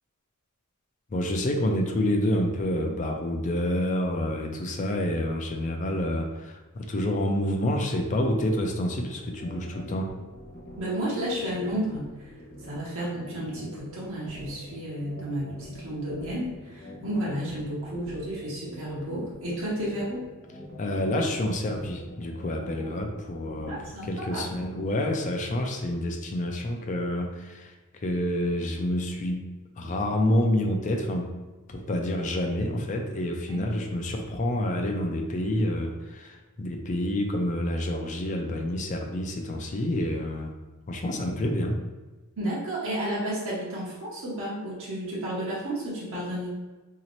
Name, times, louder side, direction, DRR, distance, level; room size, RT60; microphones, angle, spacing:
voice 1, 1.1-10.1 20.8-23.7 24.1-29.4 29.8-31.3 31.7-40.5 40.9-41.8, left 1 dB, 35° left, 3 dB, 0.4 m, -28 dB
sound 1, 9.2-23.9, left 1 dB, 50° left, 1.2 m, -44 dB
voice 2, 10.8-12.3 12.6-20.3 23.7-24.5 33.5-33.6 42.4-46.6, right 1 dB, 65° right, -6 dB, 0.8 m, -32 dB
2.9 x 2.8 x 2.9 m, 1.2 s
head